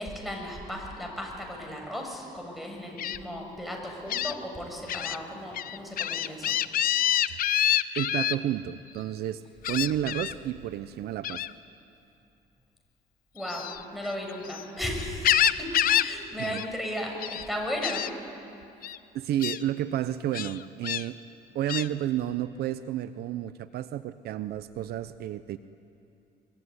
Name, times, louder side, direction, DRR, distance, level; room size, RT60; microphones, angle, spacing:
voice 1, 0.0-6.6 13.3-18.1, equal, ahead, 1 dB, 6.8 m, -35 dB
Gull seagull, 3.0-3.2 4.1-4.3 4.9-5.2 5.5-8.4 9.6-10.3 11.2-11.5 13.4-14.6 15.0-16.1 16.4-16.7 17.0-17.5 17.8-18.1 18.8-19.0 19.4-19.6 20.3-21.0 21.7-21.9, left 11 dB, 60° left, 0.8 m, -27 dB
voice 2, 8.0-9.4 9.7-11.4 16.4-16.6 19.1-21.2 21.5-25.6, right 12 dB, 70° right, 13 dB, 0.8 m, -31 dB
24.0 x 23.5 x 9.7 m, 2.6 s
cardioid pair, 110°, 17 cm